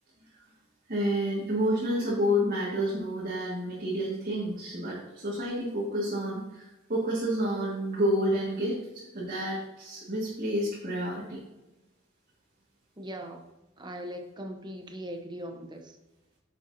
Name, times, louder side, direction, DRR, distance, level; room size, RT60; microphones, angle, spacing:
voice 1, 0.9-11.4, equal, 45° right, -7 dB, 2.0 m, -29 dB
voice 2, 13.0-13.4 13.8-16.0, equal, 25° right, 3 dB, 1.0 m, -40 dB
9.8 x 7.0 x 2.8 m, 1.0 s
head